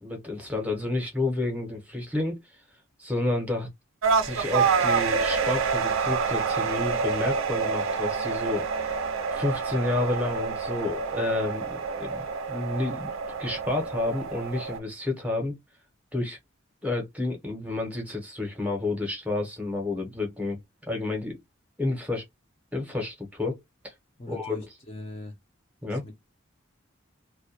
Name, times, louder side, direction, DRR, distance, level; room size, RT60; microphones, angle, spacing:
voice 1, 0.0-2.6 3.0-3.7 4.2-8.9 9.3-13.1 13.4-15.5 16.1-16.4 16.8-20.6 20.9-21.4 21.8-22.2 22.7-23.9 24.3-24.6 25.8-26.0, left 2 dB, 5° right, 0.7 m, -30 dB
sound 1, 4.0-14.8, right 5 dB, 75° right, 0.4 m, -27 dB
voice 2, 24.2-25.3 25.9-26.1, left 2 dB, 30° left, 0.5 m, -40 dB
2.2 x 2.2 x 2.7 m
head